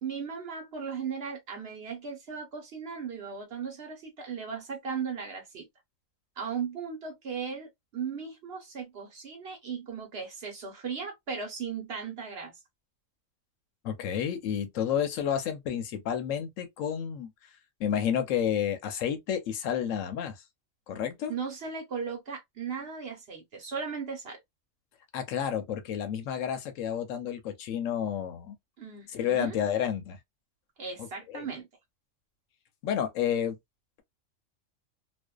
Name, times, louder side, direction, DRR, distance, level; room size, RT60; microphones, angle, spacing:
voice 1, 0.0-5.7 6.4-12.5 21.3-24.4 28.8-29.6 30.8-31.7, right 6 dB, 55° right, 1.0 m, -37 dB
voice 2, 13.8-17.3 17.8-20.4 20.9-21.3 25.1-28.6 29.1-30.2 31.0-31.5 32.8-33.6, left 9 dB, 75° left, 0.9 m, -30 dB
2.5 x 2.2 x 2.2 m
omnidirectional pair, 1.4 m